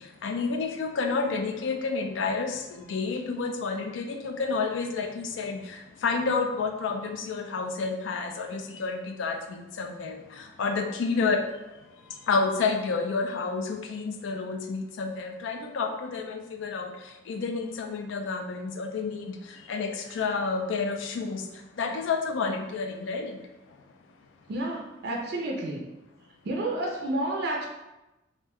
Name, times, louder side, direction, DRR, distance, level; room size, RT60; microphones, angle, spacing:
voice 1, 0.2-2.6 2.9-5.6 6.0-9.4 9.8-10.2 10.6-11.5 12.3-16.9 17.3-19.3 19.7-19.9 20.2-21.4 21.8-23.3, left 4 dB, 75° left, 5 dB, 0.3 m, -29 dB
voice 2, 24.5-25.8 26.4-27.7, right 1 dB, 55° right, 0 dB, 0.4 m, -30 dB
2.5 x 2.1 x 3.5 m, 0.99 s
head